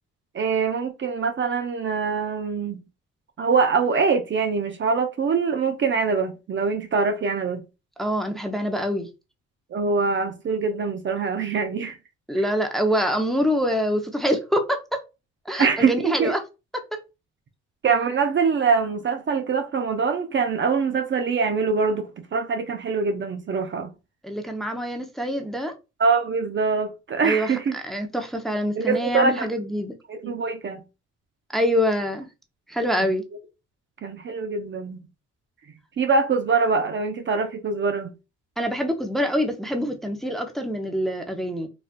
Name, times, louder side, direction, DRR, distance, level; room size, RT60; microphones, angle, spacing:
voice 1, 0.3-2.8 3.4-7.6 9.7-12.0 15.6-16.3 17.8-23.9 26.0-27.7 28.8-29.5 30.1-30.8 34.0-35.0 36.0-38.1, right 5 dB, 40° right, 0.5 m, -23 dB
voice 2, 8.0-9.1 12.3-15.0 15.5-16.4 16.7-16.8 24.2-25.7 27.2-30.0 31.5-32.3 32.7-33.3 38.6-41.7, equal, ahead, 0.6 m, -25 dB
4.1 x 2.4 x 2.2 m
cardioid pair, 90°, 30 cm